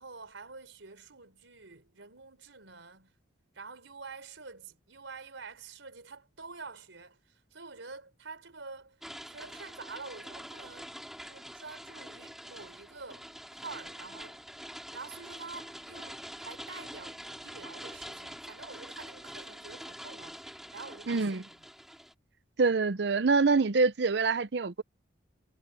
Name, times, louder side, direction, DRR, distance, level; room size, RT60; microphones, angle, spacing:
voice 1, 0.0-3.2 3.5-10.9 11.3-13.3 13.6-14.4 14.9-21.6, right 4 dB, 90° right, 4.2 m, -47 dB
sound 1, 9.0-22.1, equal, ahead, 4.0 m, -45 dB
voice 2, 21.1-21.4 22.6-24.8, right 4 dB, 60° right, 0.6 m, -25 dB
head